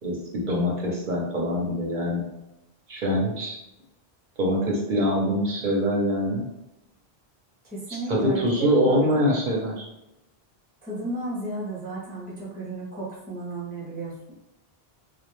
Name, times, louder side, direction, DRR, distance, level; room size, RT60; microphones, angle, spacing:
voice 1, 0.0-2.2 2.9-3.6 4.4-6.4 8.1-9.9, equal, 55° right, -3 dB, 0.7 m, -24 dB
voice 2, 7.6-9.3 10.8-14.3, right 2 dB, 15° left, -7 dB, 0.4 m, -34 dB
2.2 x 2.1 x 2.9 m, 0.90 s
omnidirectional pair, 1.0 m